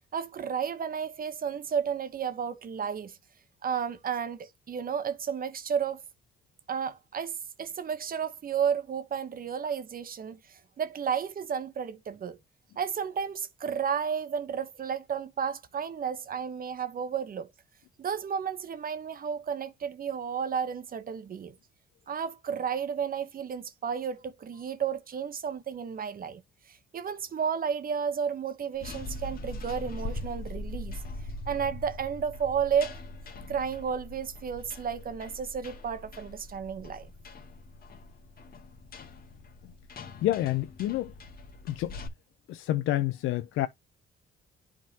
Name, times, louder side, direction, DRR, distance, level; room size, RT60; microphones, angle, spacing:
voice 1, 0.1-3.2 3.6-6.0 6.7-12.4 12.8-17.5 18.0-21.5 22.1-26.4 26.7-31.0 31.5-33.0 33.5-37.1, right 7 dB, 45° right, 1.0 m, -32 dB
sound 1, 28.7-42.1, left 2 dB, 50° left, 1.9 m, -42 dB
voice 2, 40.2-41.1 41.7-42.0 42.5-43.7, left 14 dB, 85° left, 0.5 m, -28 dB
10.5 x 3.7 x 2.8 m
cardioid pair, 90°, 20 cm